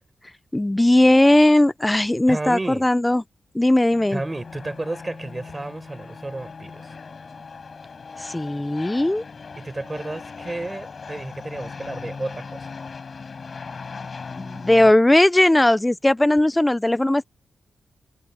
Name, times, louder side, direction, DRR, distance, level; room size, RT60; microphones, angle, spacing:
voice 1, 0.5-3.2 3.5-4.2 8.2-9.2 14.3-17.3, left 1 dB, 15° left, 0.9 m, -18 dB
voice 2, 2.3-2.9 4.1-6.9 9.6-12.7, right 2 dB, 25° right, 6.4 m, -32 dB
sound 1, 3.9-14.9, left 5 dB, 55° left, 6.1 m, -38 dB
cardioid pair, 55°, 0 cm